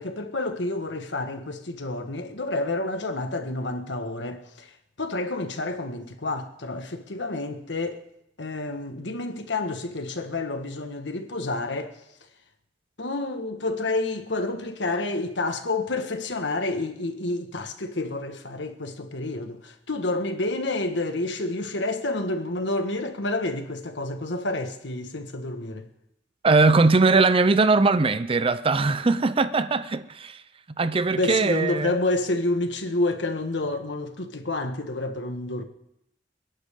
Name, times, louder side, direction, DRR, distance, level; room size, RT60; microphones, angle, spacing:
voice 1, 0.0-4.7 5.0-8.0 8.4-12.0 13.0-25.9 31.1-35.6, left 2 dB, 75° left, 1.6 m, -29 dB
voice 2, 26.4-30.4 30.8-31.9, right 3 dB, 30° right, 0.5 m, -20 dB
29.0 x 11.0 x 3.7 m
head